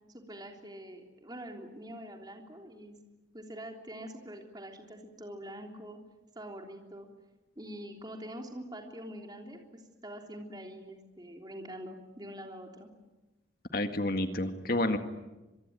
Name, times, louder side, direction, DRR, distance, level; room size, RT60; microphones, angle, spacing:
voice 1, 0.1-3.0 3.3-6.0 6.3-7.1 7.5-12.9, equal, 20° right, 2 dB, 3.4 m, -45 dB
voice 2, 13.7-15.0, left 1 dB, 50° left, 7 dB, 1.9 m, -29 dB
26.0 x 23.0 x 9.5 m, 1.1 s
head